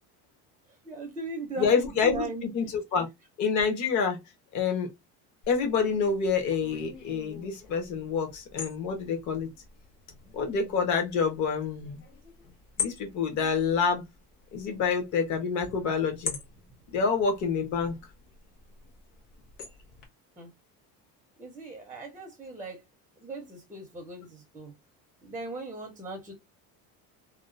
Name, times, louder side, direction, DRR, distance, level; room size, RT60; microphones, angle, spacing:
voice 1, 0.8-2.5 20.4-20.5 21.4-22.8 23.2-24.7 25.2-26.3, right 3 dB, 10° right, 0.5 m, -39 dB
voice 2, 1.6-3.1 3.4-4.2 4.5-4.9 5.5-9.5 10.3-12.0 12.8-14.0 14.5-16.4 16.9-17.9, left 5 dB, 50° left, 1.1 m, -27 dB
sound 1, 5.4-20.1, left 6 dB, 85° left, 1.4 m, -43 dB
2.8 x 2.3 x 2.5 m
cardioid pair, 150°, 36 cm